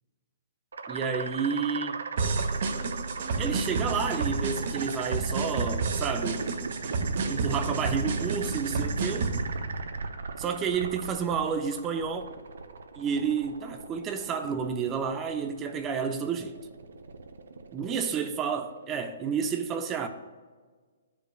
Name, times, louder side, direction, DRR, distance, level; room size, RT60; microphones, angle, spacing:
sound 1, 0.7-19.5, right 4 dB, 85° right, 0.7 m, -38 dB
voice 1, 0.9-2.0 3.4-6.4 7.3-9.4 10.4-12.2 13.0-16.6 17.7-20.1, right 6 dB, 20° right, 0.5 m, -30 dB
sound 2, 2.2-9.4, right 4 dB, 55° right, 0.9 m, -30 dB
15.5 x 5.2 x 2.3 m
hypercardioid pair, 155°, 0 cm